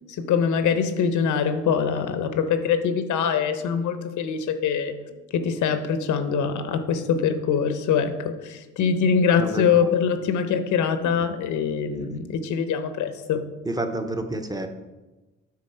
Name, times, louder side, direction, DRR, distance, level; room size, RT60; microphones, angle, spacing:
voice 1, 0.1-4.9 5.3-13.4, left 6 dB, 75° left, 9 dB, 0.8 m, -23 dB
voice 2, 9.4-9.9 12.0-12.2 13.6-14.7, right 2 dB, 15° right, 7 dB, 0.7 m, -30 dB
8.5 x 3.7 x 5.5 m, 1.2 s
cardioid pair, 90°, 30 cm